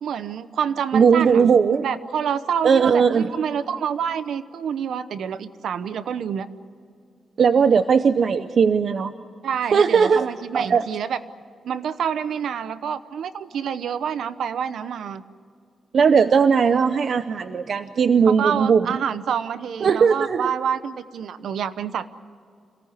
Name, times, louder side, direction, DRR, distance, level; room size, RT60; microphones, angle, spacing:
voice 1, 0.0-1.4 1.8-6.5 9.4-11.2 11.6-15.2 18.3-22.1, right 8 dB, 85° right, 13 dB, 0.9 m, -27 dB
voice 2, 0.9-1.9 2.6-3.3 7.4-9.1 9.7-10.9 15.9-19.0 19.8-20.5, right 6 dB, 50° right, 11 dB, 0.6 m, -18 dB
27.0 x 18.0 x 9.8 m, 2.4 s
wide cardioid pair, 170°, 0 cm